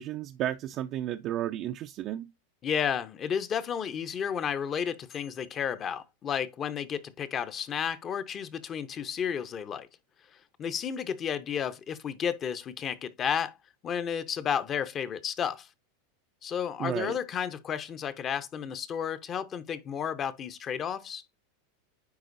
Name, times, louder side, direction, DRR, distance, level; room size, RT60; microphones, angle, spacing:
voice 1, 0.0-2.3 16.8-17.2, right 12 dB, 45° right, 0.4 m, -33 dB
voice 2, 2.6-9.9 10.6-13.5 13.8-15.7 16.4-21.2, left 8 dB, 30° left, 0.7 m, -32 dB
9.6 x 3.9 x 2.6 m
supercardioid pair, 125°, 0 cm